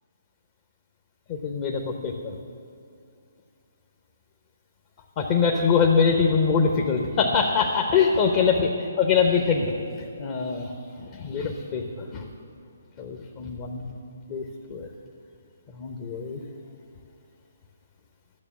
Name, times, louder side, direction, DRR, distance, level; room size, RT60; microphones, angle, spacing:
voice 1, 1.3-2.3 5.2-8.7 9.0-9.7 10.2-10.7 11.1-12.3 13.0-13.9 14.3-14.9 15.7-16.4, left 5 dB, 30° left, 2 dB, 0.8 m, -23 dB
12.0 x 6.8 x 7.4 m, 2.4 s
figure-of-eight pair, 135°, 0 cm